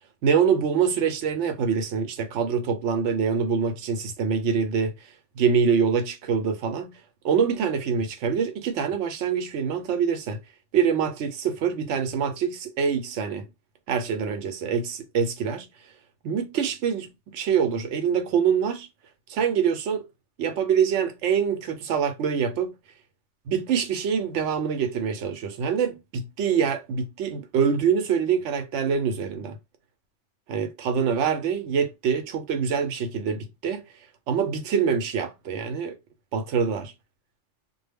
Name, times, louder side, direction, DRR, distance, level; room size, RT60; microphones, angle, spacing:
voice 1, 0.2-4.9 5.4-7.0 7.2-10.4 10.7-13.5 13.9-15.7 16.2-18.9 19.3-20.1 20.4-22.8 23.5-29.6 30.5-33.8 34.3-36.0 36.3-36.9, right 6 dB, 75° right, 0.9 m, -25 dB
2.2 x 2.0 x 3.3 m
omnidirectional pair, 1.2 m